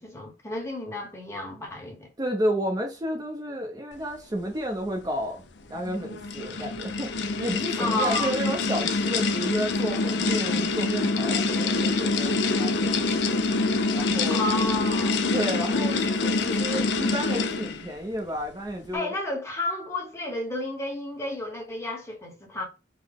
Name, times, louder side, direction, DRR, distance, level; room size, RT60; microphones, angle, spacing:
voice 1, 0.0-2.1 7.8-8.3 14.3-15.2 16.2-16.7 18.9-22.6, left 1 dB, 15° left, 0.9 m, -32 dB
voice 2, 2.2-5.4 5.7-7.1 7.4-13.0 13.3-13.4 13.9-14.4 15.3-19.1, equal, 20° right, 0.5 m, -31 dB
sound 1, 5.7-17.9, left 3 dB, 65° left, 0.4 m, -26 dB
3.8 x 2.0 x 3.4 m
head